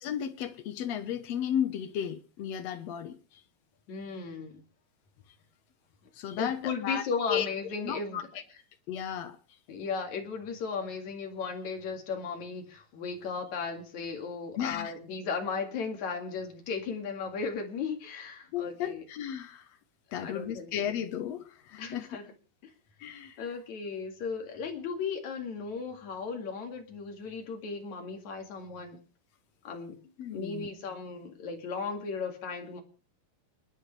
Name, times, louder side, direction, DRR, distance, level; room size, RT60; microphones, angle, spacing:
voice 1, 0.0-3.4 6.1-7.0 7.3-7.5 7.8-8.2 8.9-9.4 14.6-14.9 18.5-19.7 20.1-22.1 23.0-23.4 30.2-30.7, left 9 dB, 85° left, 1.4 m, -34 dB
voice 2, 3.9-4.6 6.4-8.2 9.7-19.0 20.1-20.7 21.8-22.2 23.4-29.0 29.6-30.0 30.3-32.8, left 5 dB, 50° left, 3.3 m, -36 dB
29.5 x 9.9 x 3.3 m
omnidirectional pair, 4.5 m